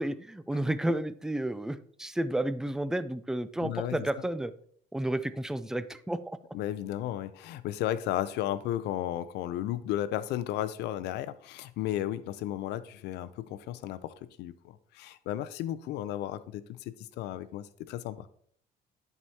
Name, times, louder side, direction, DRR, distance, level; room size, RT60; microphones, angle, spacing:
voice 1, 0.0-4.5 4.9-6.4, right 1 dB, 5° right, 0.3 m, -31 dB
voice 2, 3.6-4.0 6.5-18.3, left 12 dB, 80° left, 0.5 m, -34 dB
11.0 x 4.7 x 2.8 m
cardioid pair, 110°, 17 cm